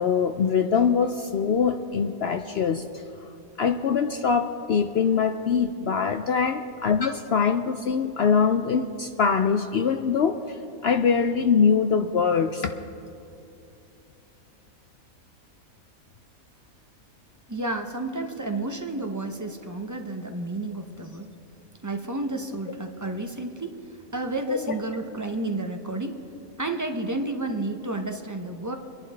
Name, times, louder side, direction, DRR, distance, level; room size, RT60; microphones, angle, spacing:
voice 1, 0.0-2.8 3.6-12.7 24.5-24.7, left 6 dB, 65° left, 6 dB, 0.6 m, -23 dB
voice 2, 17.5-21.3 21.8-26.2 26.6-28.7, right 2 dB, 30° right, 5 dB, 0.3 m, -31 dB
24.5 x 11.0 x 3.3 m, 2.7 s
omnidirectional pair, 1.5 m